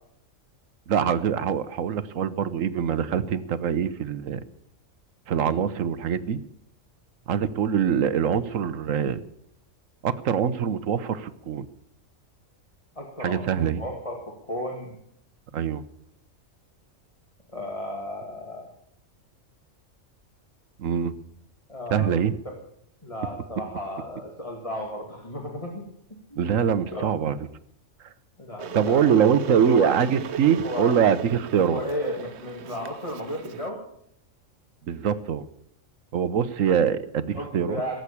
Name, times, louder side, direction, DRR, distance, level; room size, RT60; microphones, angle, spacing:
voice 1, 0.9-4.4 5.3-6.4 7.3-9.2 10.0-11.7 13.2-13.8 15.5-15.8 20.8-21.1 21.9-22.3 26.4-27.4 28.7-31.8 34.9-35.4 36.1-37.8, right 8 dB, 85° right, 14 dB, 1.3 m, -23 dB
voice 2, 13.0-15.0 17.5-18.6 21.7-22.1 22.4-22.6 23.0-27.3 28.4-29.1 29.5-30.0 30.6-31.0 31.7-33.8 37.3-38.0, left 1 dB, 25° left, 0 dB, 2.4 m, -34 dB
Water / Boiling, 28.6-33.7, right 8 dB, 60° right, 1.0 m, -38 dB
18.0 x 8.0 x 8.4 m, 0.72 s
omnidirectional pair, 1.3 m